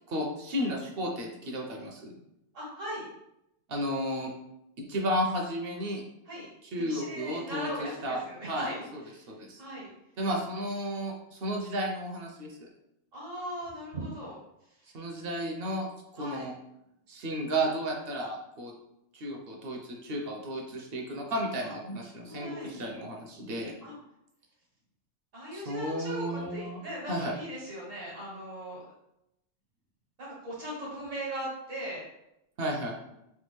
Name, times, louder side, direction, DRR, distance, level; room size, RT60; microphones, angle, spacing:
voice 1, 0.1-2.1 3.7-4.3 4.8-6.0 6.7-7.7 8.0-8.2 8.5-8.7 8.9-9.0 9.3-9.6 10.2-12.7 14.9-15.9 16.1-16.5 17.1-18.7 19.1-23.7 25.5-26.8 27.1-27.3 32.6-33.0, equal, 60° right, 0 dB, 0.7 m, -33 dB
voice 2, 2.5-3.1 6.3-6.5 6.7-8.8 9.1-9.3 9.6-9.9 13.1-14.4 16.2-16.4 22.2-22.7 23.8-23.9 25.3-28.8 30.2-32.0, right 1 dB, 85° right, -6 dB, 1.4 m, -38 dB
3.4 x 2.3 x 3.0 m, 0.83 s
omnidirectional pair, 1.3 m